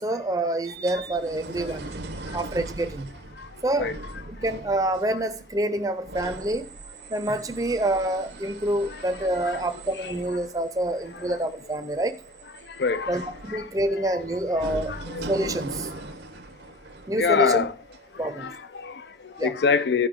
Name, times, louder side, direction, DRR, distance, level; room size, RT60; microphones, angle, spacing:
voice 1, 0.0-1.9 2.3-3.2 3.6-3.9 4.3-6.7 7.1-12.2 13.1-15.0 15.2-15.9 17.1-17.6 18.2-18.5 19.4-19.5, right 1 dB, 20° right, 0.6 m, -27 dB
sound 1, 0.6-18.8 19.4-19.5, right 2 dB, 80° right, 0.8 m, -40 dB
voice 2, 9.2-9.7 10.0-10.1 11.1-11.2 12.8-13.6 14.1-14.2 14.9-15.3 17.2-17.7 18.2-20.1, left 5 dB, 70° left, 0.5 m, -26 dB
13.5 x 5.4 x 3.7 m
head